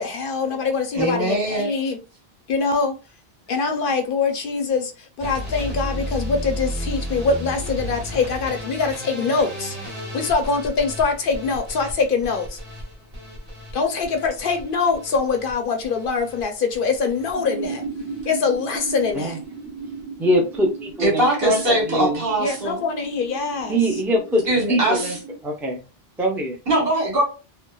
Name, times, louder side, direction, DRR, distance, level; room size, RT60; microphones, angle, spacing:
voice 1, 0.0-2.0 2.5-2.9 3.5-12.6 13.7-17.8 18.2-19.4 22.4-23.8, left 4 dB, 65° left, 0.7 m, -24 dB
voice 2, 0.9-1.7 21.0-22.8 24.5-25.2 26.7-27.2, right 1 dB, 70° right, 1.3 m, -21 dB
sound 1, 5.2-17.3 17.6-18.2 18.5-19.1 19.4-19.7 20.0-20.1 20.3-20.4, left 1 dB, 40° right, 1.1 m, -34 dB
sound 2, 17.3-25.4, right 4 dB, 85° right, 0.8 m, -35 dB
voice 3, 20.2-22.2 23.7-25.2 25.4-25.8 26.2-26.6, right 1 dB, 5° right, 0.4 m, -23 dB
3.1 x 2.0 x 2.2 m
omnidirectional pair, 1.0 m